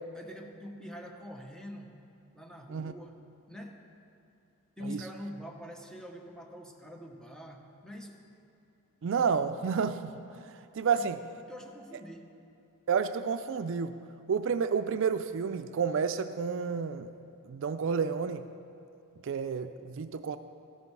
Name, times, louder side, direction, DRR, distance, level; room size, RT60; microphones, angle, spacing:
voice 1, 0.2-1.9 2.3-3.2 3.5-3.8 4.8-8.2 10.8-11.1 11.5-12.3, equal, 5° left, 2 dB, 1.0 m, -44 dB
voice 2, 9.0-10.5 10.7-11.2 12.9-13.9 14.3-17.1 17.5-18.4 19.2-20.4, right 6 dB, 60° right, 10 dB, 0.4 m, -30 dB
13.5 x 11.0 x 4.7 m, 2.7 s
head